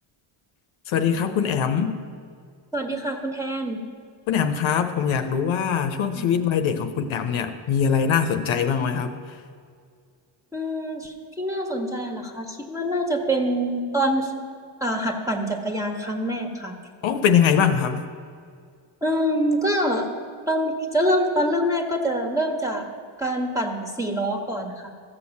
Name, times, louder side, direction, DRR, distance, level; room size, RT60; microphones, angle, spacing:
voice 1, 0.9-2.0 4.3-9.1 17.0-18.0, left 7 dB, 65° left, 7 dB, 0.9 m, -22 dB
voice 2, 2.7-3.8 6.1-6.3 10.5-14.3 14.8-16.7 19.0-20.1 20.5-22.9 23.2-24.9, equal, 5° right, 2 dB, 1.5 m, -25 dB
15.0 x 6.5 x 7.2 m, 2.2 s
cardioid pair, 105°, 50 cm